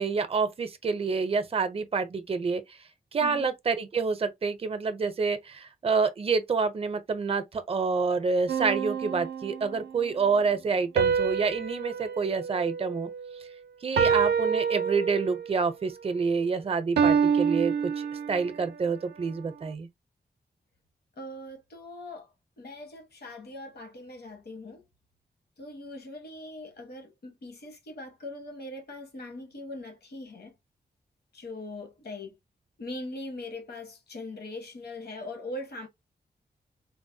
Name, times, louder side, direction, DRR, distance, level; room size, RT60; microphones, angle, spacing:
voice 1, 0.0-2.6 3.1-13.1 13.8-19.9, right 5 dB, 35° right, 0.5 m, -28 dB
sound 1, 8.5-9.9 11.0-13.4 14.0-15.6 17.0-18.6, right 6 dB, 85° right, 0.4 m, -27 dB
voice 2, 21.2-22.3 22.6-24.8 25.6-30.5 31.3-32.4 32.8-35.9, left 2 dB, 75° left, 1.2 m, -41 dB
3.7 x 2.1 x 2.6 m
wide cardioid pair, 160°, 17 cm